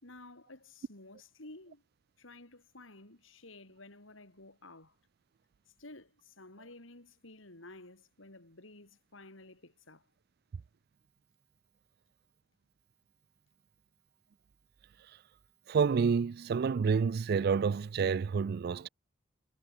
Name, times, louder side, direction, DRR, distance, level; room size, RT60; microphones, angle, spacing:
voice 1, 0.0-1.8 2.2-5.0 5.8-10.1, left 2 dB, 80° left, 4.3 m, -53 dB
voice 2, 15.7-18.9, right 5 dB, 50° right, 0.3 m, -28 dB
head